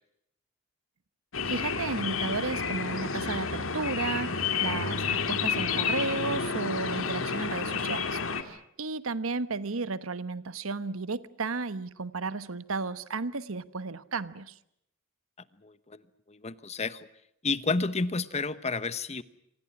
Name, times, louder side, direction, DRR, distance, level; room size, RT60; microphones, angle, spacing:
sound 1, 1.3-8.4, left 5 dB, 75° left, 2.4 m, -30 dB
voice 1, 1.5-14.5, right 3 dB, 80° right, 1.1 m, -33 dB
voice 2, 15.6-17.1 17.4-19.2, left 3 dB, 30° left, 1.1 m, -31 dB
28.0 x 25.5 x 6.1 m
head